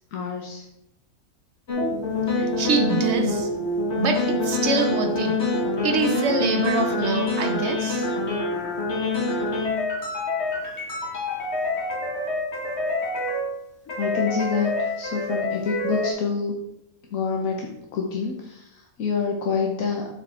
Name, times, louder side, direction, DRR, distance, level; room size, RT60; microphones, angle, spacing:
voice 1, 0.1-0.6 14.0-16.6 17.1-20.1, left 5 dB, 80° left, 1 dB, 1.3 m, -27 dB
sound 1, 1.7-13.6 13.9-16.1, left 2 dB, 55° left, 2.0 m, -26 dB
voice 2, 2.4-3.5 4.0-5.3 5.8-8.1, right 3 dB, 55° right, 5 dB, 1.3 m, -25 dB
8.4 x 5.1 x 4.3 m, 0.84 s
omnidirectional pair, 1.4 m